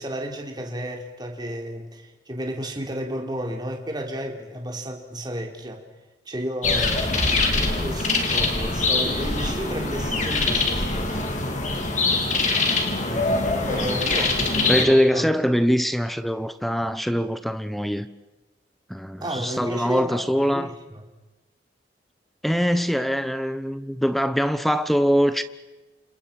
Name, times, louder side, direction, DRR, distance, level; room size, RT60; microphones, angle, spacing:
voice 1, 0.0-5.8 6.3-7.2 7.6-11.1 13.1-15.3 19.2-21.0, equal, 25° right, 3.9 m, -32 dB
sound 1, 6.6-14.8, left 3 dB, 45° left, 4.3 m, -23 dB
voice 2, 13.4-14.3 14.7-18.1 18.9-20.7 22.4-25.4, equal, ahead, 0.9 m, -23 dB
29.5 x 27.5 x 6.0 m
head